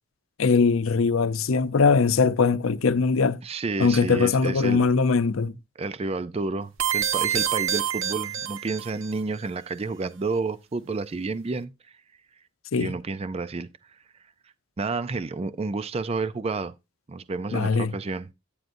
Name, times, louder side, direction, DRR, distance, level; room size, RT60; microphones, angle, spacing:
voice 1, 0.4-3.4 3.8-5.5 12.7-12.9 17.5-17.9, left 4 dB, 75° left, 0.6 m, -21 dB
voice 2, 3.4-4.9 5.8-12.0 12.8-14.0 14.8-16.7 17.1-18.3, right 3 dB, 30° right, 0.4 m, -30 dB
sound 1, 6.8-9.1, right 9 dB, 65° right, 1.0 m, -27 dB
10.0 x 9.3 x 2.6 m
head